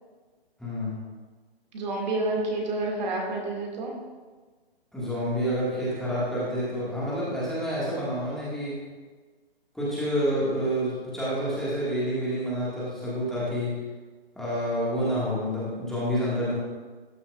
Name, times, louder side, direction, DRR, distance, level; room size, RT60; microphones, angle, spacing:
voice 1, 0.6-1.0 4.9-8.8 9.7-13.7 14.3-16.5, equal, ahead, -10 dB, 1.8 m, -28 dB
voice 2, 1.7-3.9, right 2 dB, 45° right, -1 dB, 2.1 m, -29 dB
13.0 x 7.1 x 2.4 m, 1.4 s
hypercardioid pair, 145°, 30 cm